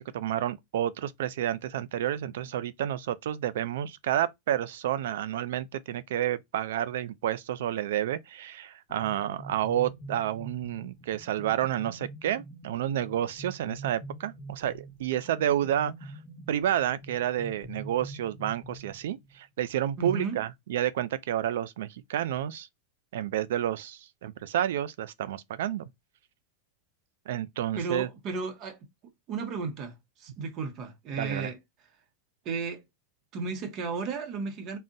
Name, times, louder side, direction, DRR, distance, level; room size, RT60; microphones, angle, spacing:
voice 1, 0.0-16.1 16.5-22.7 23.1-25.9 27.3-28.1 31.2-31.5, right 11 dB, 80° right, 0.3 m, -30 dB
sound 1, 8.9-19.4, right 1 dB, 25° left, 1.0 m, -45 dB
voice 2, 20.0-20.4 27.7-28.8 29.3-31.6 32.4-32.8 33.3-34.8, right 4 dB, 35° right, 0.7 m, -34 dB
3.6 x 2.1 x 2.6 m
supercardioid pair, 150°, 0 cm